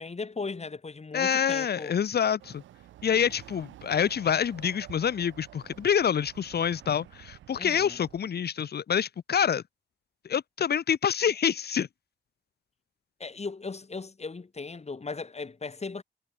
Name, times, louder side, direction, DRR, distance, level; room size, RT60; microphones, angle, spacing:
voice 1, 0.0-2.0 7.6-8.0 13.2-16.0, left 4 dB, 35° left, 1.8 m, -37 dB
voice 2, 1.1-2.6 3.0-9.6 10.3-11.9, left 8 dB, 60° left, 0.9 m, -27 dB
Chatter / Car passing by / Motorcycle, 2.4-8.3, right 13 dB, 90° right, 4.1 m, -50 dB
supercardioid pair, 45°, 19 cm